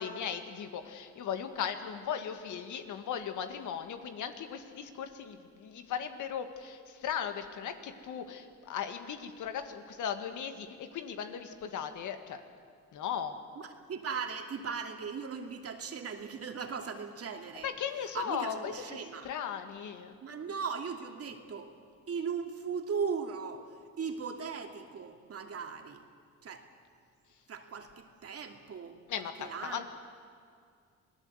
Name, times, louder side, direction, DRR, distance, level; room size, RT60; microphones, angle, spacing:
voice 1, 0.0-12.4 12.9-13.4 17.6-20.1 29.1-29.9, left 8 dB, 80° left, 7 dB, 1.9 m, -37 dB
voice 2, 13.6-17.7 18.1-19.3 20.2-21.7 22.1-26.0 26.4-26.7 27.5-29.9, right 6 dB, 50° right, 4 dB, 2.6 m, -38 dB
27.5 x 18.5 x 8.1 m, 2.2 s
cardioid pair, 90°, 30 cm